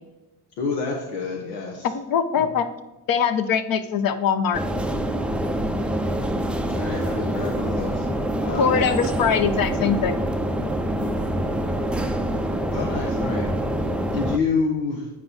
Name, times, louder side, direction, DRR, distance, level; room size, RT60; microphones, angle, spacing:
voice 1, 0.6-1.9 2.4-2.5 6.7-8.1 8.4-8.9 12.7-15.1, left 4 dB, 85° left, 0 dB, 1.1 m, -28 dB
voice 2, 1.9-2.7 3.1-4.6 8.6-10.2, left 7 dB, 45° left, 11 dB, 0.8 m, -22 dB
sound 1, 4.5-14.4, right 1 dB, ahead, 0.4 m, -25 dB
8.6 x 4.8 x 4.0 m, 1.0 s
supercardioid pair, 75°, 47 cm